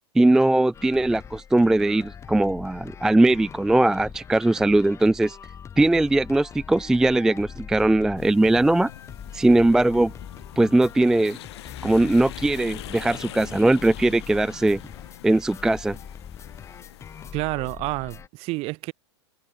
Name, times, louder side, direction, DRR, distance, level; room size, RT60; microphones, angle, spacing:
voice 1, 0.2-5.4 5.8-8.9 9.3-10.1 10.6-11.4 11.8-14.8 15.2-16.0, right 2 dB, 5° right, 0.4 m, -20 dB
sound 1, 0.7-18.3, left 7 dB, 20° left, 1.0 m, -42 dB
sound 2, 8.2-17.3, left 14 dB, 60° left, 1.6 m, -43 dB
voice 2, 17.3-18.9, right 23 dB, 40° right, 2.2 m, -29 dB
hypercardioid pair, 110°, 15 cm